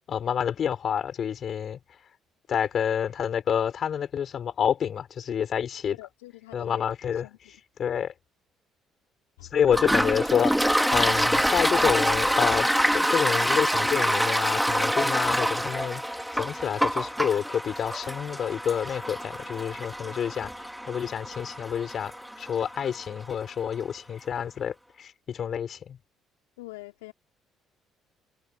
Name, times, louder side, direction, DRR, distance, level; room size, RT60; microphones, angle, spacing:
voice 1, 0.1-1.8 2.5-5.9 6.5-7.3 7.8-8.1 9.5-12.7 12.9-16.0 16.3-22.1 22.4-26.0, left 8 dB, 50° left, 4.5 m, -28 dB
voice 2, 6.0-6.8 7.2-7.4 9.4-9.5 26.6-27.1, left 20 dB, 80° left, 3.2 m, -44 dB
Toilet flush, 9.7-23.1, equal, ahead, 2.2 m, -26 dB
hypercardioid pair, 55°, 0 cm